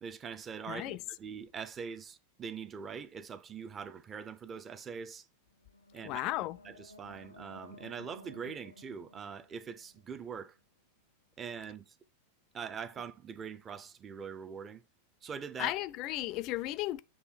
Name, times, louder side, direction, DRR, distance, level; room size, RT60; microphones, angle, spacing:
voice 1, 0.0-5.3 5.9-6.2 6.6-10.6 11.4-12.0 12.5-14.8 15.2-15.7, right 6 dB, 25° right, 0.6 m, -43 dB
voice 2, 0.7-1.0 6.0-6.6 15.6-17.0, left 16 dB, 40° left, 0.4 m, -34 dB
sound 1, 5.5-10.6, left 2 dB, 85° left, 0.6 m, -55 dB
7.9 x 3.2 x 4.4 m
figure-of-eight pair, 90°, 0 cm